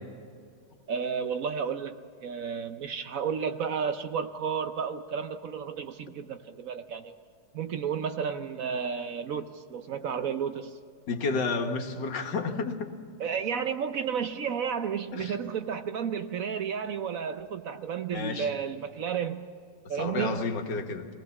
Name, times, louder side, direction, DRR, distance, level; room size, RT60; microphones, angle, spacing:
voice 1, 0.9-7.2 7.5-10.8 13.2-19.5 19.9-20.5, right 7 dB, 60° right, 9 dB, 1.0 m, -32 dB
voice 2, 11.1-13.0 15.1-15.4 18.1-18.5 19.9-21.1, left 4 dB, 80° left, 4 dB, 2.0 m, -31 dB
22.0 x 17.5 x 7.1 m, 2.2 s
omnidirectional pair, 1.9 m